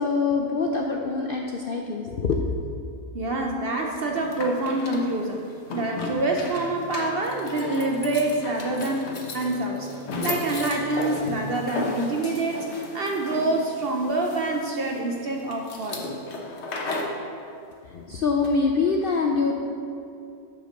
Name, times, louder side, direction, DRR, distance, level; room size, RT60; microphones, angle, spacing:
voice 1, 0.0-2.5 17.9-19.5, left 4 dB, 70° left, 1 dB, 0.5 m, -24 dB
voice 2, 3.1-5.4 5.7-12.7 12.9-16.1, right 2 dB, 55° right, 1 dB, 0.7 m, -26 dB
sound 1, 4.0-17.2, left 2 dB, 50° left, 1.1 m, -35 dB
sound 2, 6.3-12.0, left 1 dB, 30° left, 1.9 m, -43 dB
6.7 x 5.7 x 6.5 m, 2.6 s
omnidirectional pair, 1.6 m